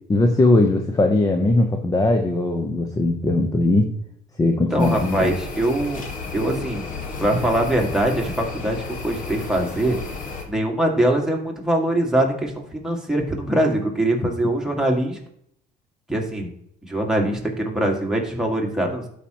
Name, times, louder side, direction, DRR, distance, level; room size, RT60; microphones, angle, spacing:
voice 1, 0.1-3.9 4.4-5.3, left 2 dB, 20° left, 4 dB, 0.9 m, -19 dB
voice 2, 4.7-6.0 6.3-6.8 7.2-8.8 9.0-10.0 10.5-15.2 16.1-16.5 16.8-19.0, right 1 dB, 5° right, 0 dB, 2.0 m, -22 dB
sound 1, 4.8-10.4, left 3 dB, 50° left, 1.7 m, -32 dB
12.0 x 5.0 x 3.0 m, 0.69 s
cardioid pair, 110°, 17 cm